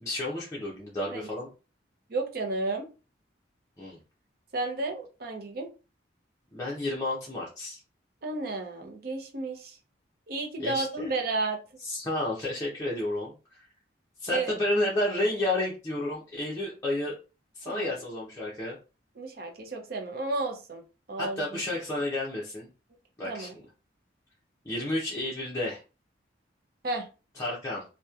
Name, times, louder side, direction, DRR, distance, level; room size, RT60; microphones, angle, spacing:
voice 1, 0.0-1.5 3.8-4.0 6.5-7.8 10.6-11.1 11.8-13.7 14.2-17.1 17.5-18.8 21.2-22.7 23.2-23.5 24.6-25.8 27.4-27.8, left 1 dB, 15° left, -6 dB, 0.5 m, -31 dB
voice 2, 2.1-2.9 4.5-5.7 8.2-9.8 10.3-11.6 14.3-14.6 17.6-17.9 19.2-20.8 21.1-21.6 23.2-23.5 26.8-27.1, right 3 dB, 55° right, 3 dB, 0.6 m, -32 dB
2.8 x 2.1 x 2.3 m, 0.32 s
head